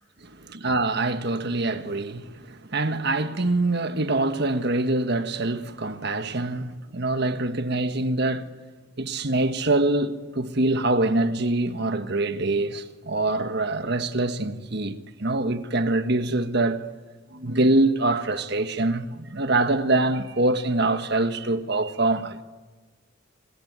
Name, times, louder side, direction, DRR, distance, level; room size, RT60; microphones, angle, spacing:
voice 1, 0.2-8.5 9.0-16.8 17.3-22.4, right 2 dB, 55° right, 1.5 m, -24 dB
28.5 x 21.5 x 9.6 m
head